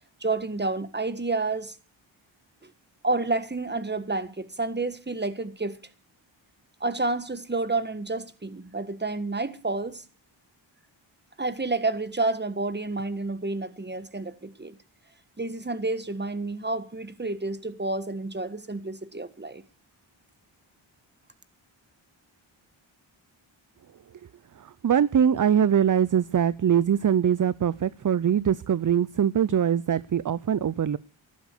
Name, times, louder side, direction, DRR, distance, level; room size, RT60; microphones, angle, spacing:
voice 1, 0.2-1.8 2.6-2.7 3.0-5.8 6.8-10.0 11.4-14.8 15.4-19.6, right 3 dB, 20° right, 1.6 m, -29 dB
voice 2, 24.5-31.0, right 8 dB, 40° right, 0.6 m, -23 dB
13.5 x 12.0 x 6.6 m
cardioid pair, 55°, 48 cm